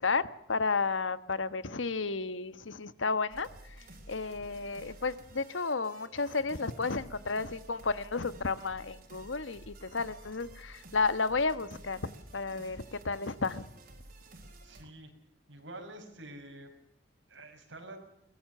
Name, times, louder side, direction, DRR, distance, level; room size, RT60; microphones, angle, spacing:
voice 1, 0.0-3.5 4.1-12.0 12.3-13.7, left 4 dB, 85° left, 14 dB, 1.2 m, -32 dB
sound 1, 3.3-14.8, right 1 dB, 50° right, 4.4 m, -52 dB
voice 2, 14.6-15.1 15.5-16.7 17.3-18.0, right 1 dB, 80° right, 4 dB, 5.9 m, -47 dB
23.0 x 20.0 x 6.7 m, 0.77 s
head